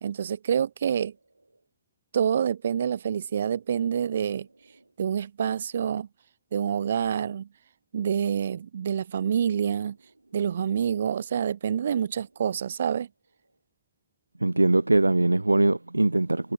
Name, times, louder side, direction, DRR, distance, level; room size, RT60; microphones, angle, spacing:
voice 1, 0.0-1.1 2.1-4.5 5.0-6.1 6.5-7.5 7.9-10.0 10.3-13.1, right 8 dB, 65° right, 1.9 m, -27 dB
voice 2, 14.4-16.5, right 2 dB, 85° right, 0.5 m, -22 dB
figure-of-eight pair, 90°, 0 cm